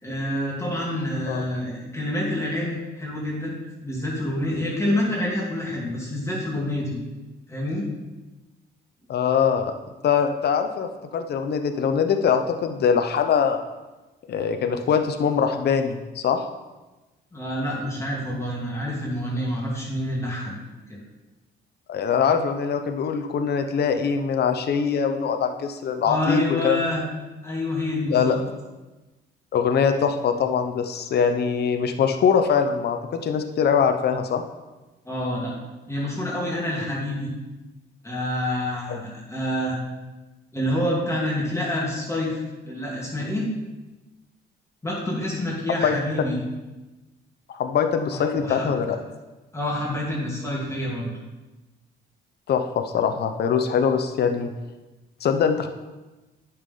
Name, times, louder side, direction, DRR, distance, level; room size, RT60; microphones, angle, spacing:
voice 1, 0.0-3.6 3.8-7.0 7.5-7.8 17.3-20.5 20.9-21.0 26.0-27.0 27.4-28.4 35.1-35.5 35.9-37.3 38.0-39.8 40.5-42.4 42.6-43.5 44.8-46.4 48.1-48.7 49.5-51.1, left 1 dB, 15° left, -5 dB, 2.6 m, -27 dB
voice 2, 9.1-9.7 10.0-13.6 14.3-16.4 21.9-26.8 28.1-28.4 29.5-34.4 45.8-46.0 47.5-49.0 52.5-54.5 55.2-55.7, left 7 dB, 55° left, 6 dB, 0.7 m, -22 dB
9.4 x 5.8 x 3.8 m, 1.1 s
cardioid pair, 90°, 20 cm